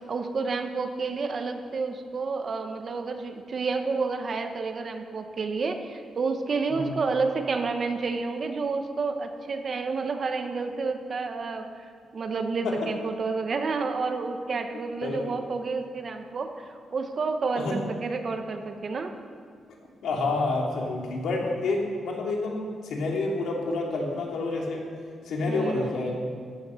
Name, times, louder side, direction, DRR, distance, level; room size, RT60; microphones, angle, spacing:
voice 1, 0.1-19.1 25.5-26.0, right 4 dB, 35° right, 6 dB, 0.9 m, -30 dB
voice 2, 20.0-24.8 25.2-26.2, left 3 dB, 90° left, -1 dB, 2.6 m, -28 dB
14.0 x 9.5 x 6.4 m, 2.1 s
wide cardioid pair, 175°, 0 cm